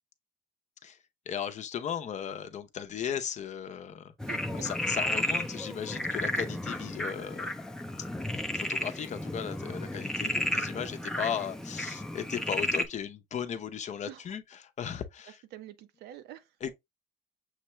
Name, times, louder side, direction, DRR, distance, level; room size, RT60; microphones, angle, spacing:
voice 1, 1.3-4.1 4.6-7.5 8.5-15.3 16.6-16.7, left 8 dB, 45° left, 0.6 m, -36 dB
Frog, 4.2-12.9, left 1 dB, 5° left, 0.5 m, -33 dB
voice 2, 4.3-4.7 14.0-14.4 15.5-16.7, right 12 dB, 75° right, 0.6 m, -46 dB
6.5 x 2.2 x 3.0 m
cardioid pair, 110°, 17 cm